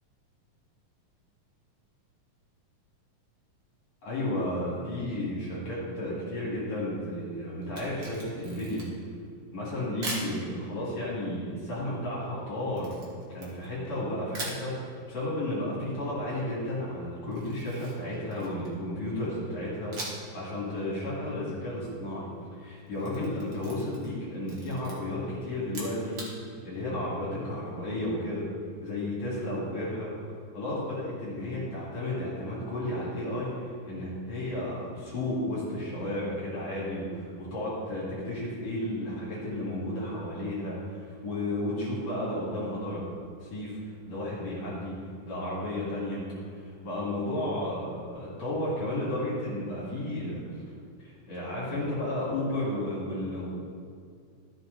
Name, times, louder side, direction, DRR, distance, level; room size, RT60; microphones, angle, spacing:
voice 1, 4.0-8.9 9.5-12.9 13.3-22.3 22.6-28.4 28.8-30.1 30.5-43.1 43.4-45.0 45.3-46.2 46.5-50.4 51.0-53.5, left 1 dB, 65° left, -8 dB, 3.4 m, -33 dB
Camera, 7.6-9.1 10.0-10.3 12.8-13.9 14.3-14.6 17.3-18.8 19.9-20.4 20.7-20.8 22.8-24.2 24.4-24.9 25.6-26.3, right 2 dB, 40° right, 1.8 m, -40 dB
13.0 x 5.9 x 3.9 m, 2.3 s
omnidirectional pair, 3.5 m